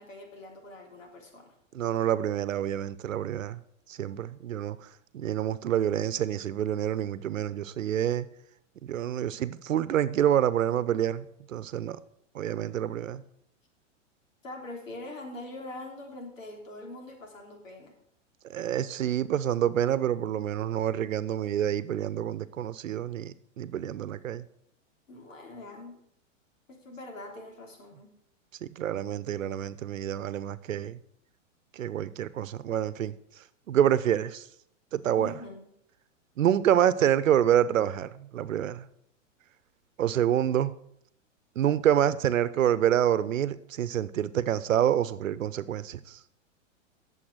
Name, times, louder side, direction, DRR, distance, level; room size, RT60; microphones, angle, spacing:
voice 1, 0.0-1.5 14.4-18.0 25.1-26.0 26.7-28.1 35.1-35.7, left 2 dB, 85° left, 3.4 m, -43 dB
voice 2, 1.7-3.6 3.9-4.8 5.1-8.3 8.9-12.0 12.3-13.2 18.5-24.4 28.6-31.0 31.8-33.1 33.7-34.4 34.9-35.3 36.4-38.9 40.0-40.7 41.6-46.2, right 10 dB, 85° right, 0.8 m, -27 dB
11.5 x 7.2 x 6.3 m
hypercardioid pair, 120°, 38 cm